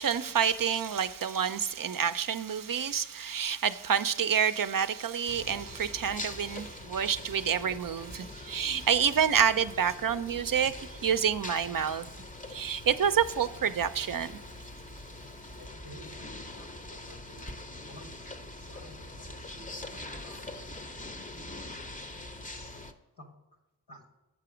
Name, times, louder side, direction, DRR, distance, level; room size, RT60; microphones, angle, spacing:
voice 1, 0.0-12.1 12.5-14.3, right 7 dB, 55° right, 0.5 m, -28 dB
sound 1, 5.3-22.9, left 2 dB, 20° left, 0.6 m, -43 dB
voice 2, 15.6-17.5 17.9-21.0 21.3-21.8 22.5-22.8 23.2-23.3 23.9-24.1, equal, 85° left, 1.7 m, -52 dB
7.6 x 5.8 x 4.9 m
wide cardioid pair, 45°, 41 cm